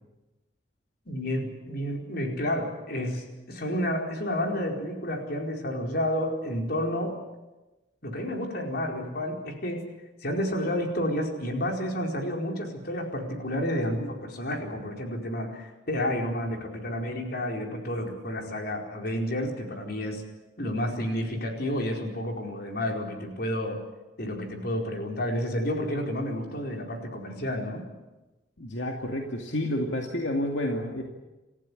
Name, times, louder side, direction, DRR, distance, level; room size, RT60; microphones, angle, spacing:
voice 1, 1.1-7.2 8.0-9.8 10.2-20.2 20.6-23.8 24.2-27.9, equal, 60° left, 2 dB, 4.6 m, -30 dB
voice 2, 28.6-31.0, left 1 dB, 85° left, 2 dB, 2.4 m, -30 dB
28.0 x 15.0 x 10.0 m, 1.1 s
head